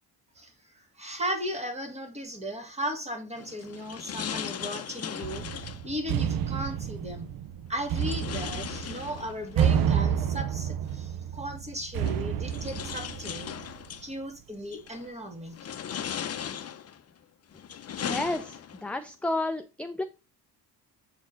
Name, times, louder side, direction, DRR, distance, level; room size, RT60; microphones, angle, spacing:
voice 1, 0.4-7.3 7.7-13.6 14.0-15.6, equal, 15° right, 1.8 m, -36 dB
sound 1, 3.3-5.9 7.9-9.6 10.9-11.0 12.0-14.1 14.7-15.1 15.5-17.0 17.5-18.9, left 8 dB, 40° left, 0.7 m, -37 dB
sound 2, 5.2-13.9, right 8 dB, 60° right, 0.6 m, -30 dB
voice 2, 18.0-20.0, left 2 dB, 5° left, 0.4 m, -31 dB
7.3 x 4.3 x 3.8 m
cardioid pair, 115°, 39 cm